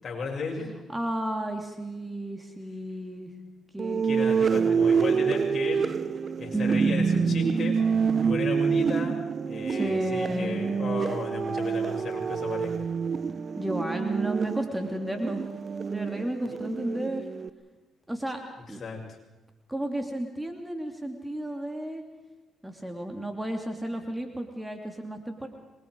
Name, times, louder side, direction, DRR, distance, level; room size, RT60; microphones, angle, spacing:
voice 1, 0.0-0.7 4.0-5.9 6.4-7.7 8.2-9.2 9.5-12.9 16.5-16.6 18.8-19.2, left 4 dB, 50° left, -1 dB, 7.1 m, -34 dB
voice 2, 0.9-3.3 3.7-4.0 4.5-5.0 6.5-7.4 9.7-10.6 13.6-15.4 15.9-17.2 18.1-18.4 18.7-18.8 19.7-22.0 22.6-25.5, right 1 dB, 10° right, 3 dB, 3.0 m, -32 dB
sound 1, 3.8-17.5, right 6 dB, 45° right, 0.9 m, -27 dB
26.5 x 22.5 x 4.9 m, 1.1 s
supercardioid pair, 60°, 0 cm